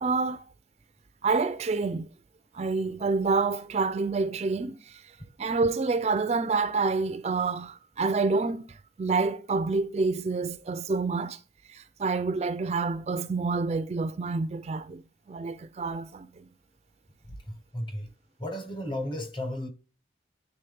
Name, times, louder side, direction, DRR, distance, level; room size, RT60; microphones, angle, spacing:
voice 1, 0.0-0.4 1.2-2.1 2.5-5.0 5.4-11.4 11.7-15.0 15.3-16.4, right 4 dB, 35° right, 0.3 m, -28 dB
voice 2, 17.3-18.1 18.4-19.7, left 1 dB, 25° left, 0.9 m, -34 dB
9.0 x 3.5 x 3.3 m
head